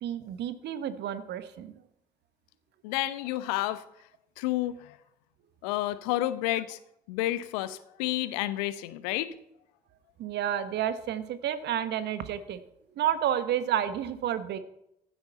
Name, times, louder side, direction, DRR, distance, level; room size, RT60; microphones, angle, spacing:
voice 1, 0.0-1.7 10.2-12.6 13.0-14.6, right 10 dB, 55° right, 12 dB, 1.3 m, -30 dB
voice 2, 2.8-3.8 4.4-5.0 5.6-6.8 7.1-9.4, left 15 dB, 65° left, 15 dB, 0.9 m, -30 dB
15.5 x 11.5 x 4.2 m, 0.79 s
figure-of-eight pair, 50°, 21 cm